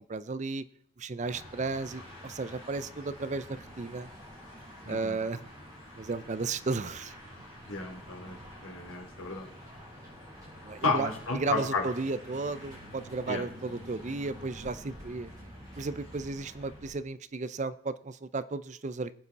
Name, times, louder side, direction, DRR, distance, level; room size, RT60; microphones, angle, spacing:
voice 1, 0.1-0.6 1.0-4.1 4.9-5.4 6.0-7.1 10.6-11.1 11.3-15.3 15.8-19.1, right 3 dB, 35° right, 15 dB, 0.5 m, -34 dB
sound 1, 1.2-16.9, equal, 20° right, 5.2 m, -48 dB
voice 2, 4.8-5.2 7.7-9.5 10.8-11.8 13.2-13.4, left 3 dB, 85° left, 2 dB, 3.3 m, -32 dB
20.5 x 8.4 x 4.1 m, 0.70 s
head